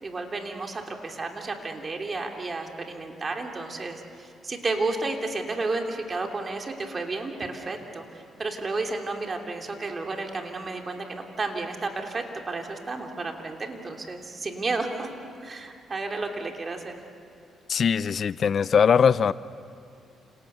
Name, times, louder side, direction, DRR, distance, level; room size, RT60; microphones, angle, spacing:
voice 1, 0.0-15.1 15.4-16.9, right 3 dB, 35° right, 3 dB, 3.1 m, -32 dB
voice 2, 17.7-19.3, left 7 dB, 50° left, 17 dB, 0.6 m, -21 dB
30.0 x 28.0 x 7.0 m, 2.5 s
cardioid pair, 90°, 0 cm